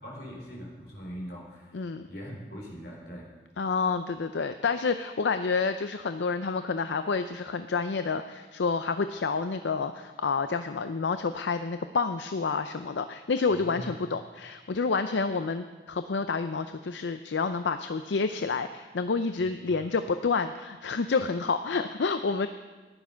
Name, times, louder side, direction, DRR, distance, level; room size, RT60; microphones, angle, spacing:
voice 1, 0.0-3.3 13.6-13.9, equal, 60° left, -2 dB, 4.0 m, -41 dB
voice 2, 1.7-2.1 3.6-22.5, left 4 dB, 80° left, 9 dB, 0.5 m, -29 dB
14.0 x 11.0 x 5.7 m, 1.3 s
head